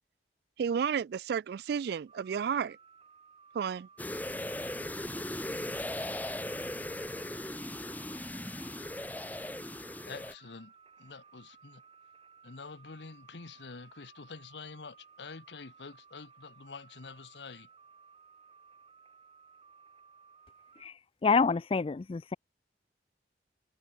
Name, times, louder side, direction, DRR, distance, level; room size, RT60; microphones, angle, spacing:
voice 1, 0.6-2.8 3.5-3.9, right 7 dB, 60° right, 0.3 m, -32 dB
sound 1, 2.1-20.9, right 6 dB, 30° right, 2.1 m, -59 dB
sound 2, 4.0-10.3, left 1 dB, 10° left, 1.5 m, -38 dB
voice 2, 10.1-10.7 11.0-11.8 12.4-17.7, left 4 dB, 75° left, 0.9 m, -47 dB
voice 3, 21.2-22.4, left 5 dB, 30° left, 0.4 m, -27 dB
head